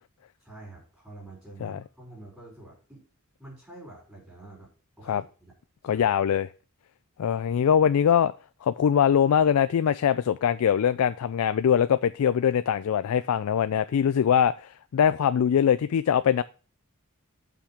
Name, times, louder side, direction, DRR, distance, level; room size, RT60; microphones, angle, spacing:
voice 1, 0.4-3.0 3.4-4.7 5.0-5.5 5.8-6.1, right 2 dB, 5° right, -8 dB, 4.9 m, -47 dB
voice 2, 5.8-6.5 7.2-8.3 8.6-16.4, left 8 dB, 70° left, 13 dB, 0.3 m, -22 dB
6.6 x 5.8 x 5.8 m, 0.39 s
head